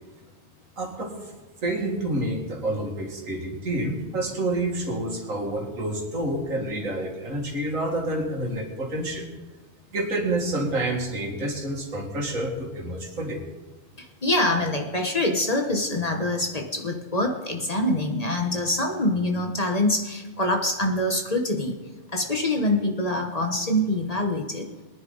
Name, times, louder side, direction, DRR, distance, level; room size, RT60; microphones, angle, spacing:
voice 1, 0.8-1.4 1.6-9.3 9.9-13.4, right 1 dB, 85° right, 0 dB, 2.6 m, -28 dB
voice 2, 14.0-21.8 22.1-24.7, left 1 dB, 30° left, 3 dB, 1.2 m, -25 dB
22.0 x 10.0 x 4.0 m, 1.3 s
omnidirectional pair, 1.3 m